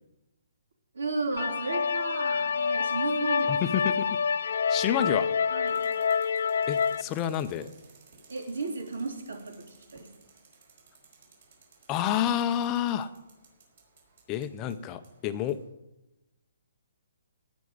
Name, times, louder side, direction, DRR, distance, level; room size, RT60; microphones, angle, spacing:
voice 1, 0.9-3.7 5.5-5.9 8.3-10.1, right 3 dB, 80° right, 3 dB, 3.5 m, -34 dB
sound 1, 1.4-7.0, left 6 dB, 60° left, 0.5 m, -27 dB
voice 2, 3.5-4.2 4.7-5.3 6.7-7.7 11.9-13.1 14.3-15.6, left 10 dB, 20° left, 10 dB, 0.6 m, -29 dB
sound 2, 5.7-15.7, right 4 dB, 50° right, 5.3 m, -59 dB
18.0 x 6.1 x 9.4 m, 1.0 s
hypercardioid pair, 170°, 0 cm